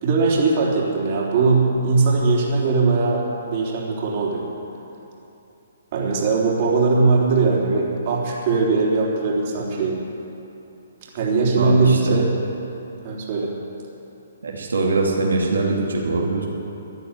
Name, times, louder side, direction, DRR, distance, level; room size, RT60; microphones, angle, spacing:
voice 1, 0.0-4.5 5.9-9.9 11.1-12.3 13.0-13.5, right 3 dB, 45° right, -2 dB, 3.5 m, -20 dB
voice 2, 11.5-12.2 14.4-16.4, right 3 dB, 85° right, -2 dB, 2.6 m, -22 dB
14.5 x 9.8 x 9.9 m, 2.9 s
hypercardioid pair, 145°, 0 cm